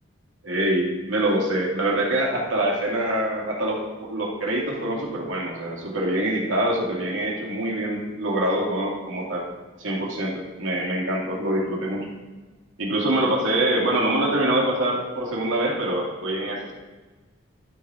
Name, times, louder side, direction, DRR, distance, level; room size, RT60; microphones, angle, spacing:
voice 1, 0.4-9.5 9.8-12.1 12.8-16.7, right 1 dB, 85° right, -3 dB, 2.4 m, -25 dB
12.0 x 6.7 x 3.7 m, 1.3 s
head